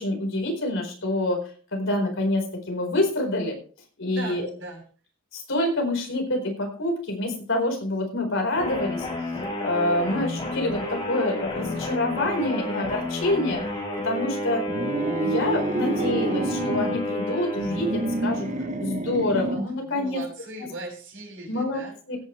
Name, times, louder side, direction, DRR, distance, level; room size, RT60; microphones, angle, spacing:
voice 1, 0.0-1.4 1.7-3.6 4.0-4.5 5.3-9.1 9.6-13.6 14.0-14.6 15.2-18.5 18.8-20.2 20.6-20.7 21.5-21.8 22.1-22.2, left 1 dB, 65° left, 3 dB, 4.4 m, -26 dB
voice 2, 4.1-4.8 19.8-21.9, right 2 dB, 65° right, -1 dB, 6.9 m, -38 dB
sound 1, 8.6-18.8, left 1 dB, 25° left, 7.1 m, -31 dB
sound 2, 14.7-17.0 17.6-19.8, right 2 dB, 35° right, 0.8 m, -28 dB
17.0 x 9.5 x 3.2 m, 0.39 s
head